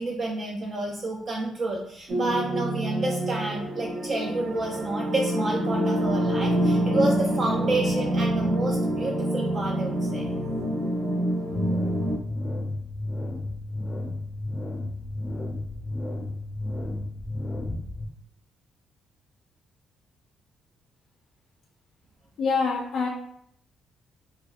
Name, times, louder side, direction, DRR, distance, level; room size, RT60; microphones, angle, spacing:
voice 1, 0.0-10.3, right 2 dB, 50° right, -1 dB, 0.5 m, -29 dB
sound 1, 2.1-12.2, right 1 dB, 65° right, 1.0 m, -26 dB
sound 2, 11.5-18.1, left 2 dB, 15° left, 0.5 m, -32 dB
voice 2, 22.4-23.1, left 4 dB, 65° left, -1 dB, 0.5 m, -25 dB
4.2 x 2.3 x 2.4 m, 0.69 s
cardioid pair, 90°, 0 cm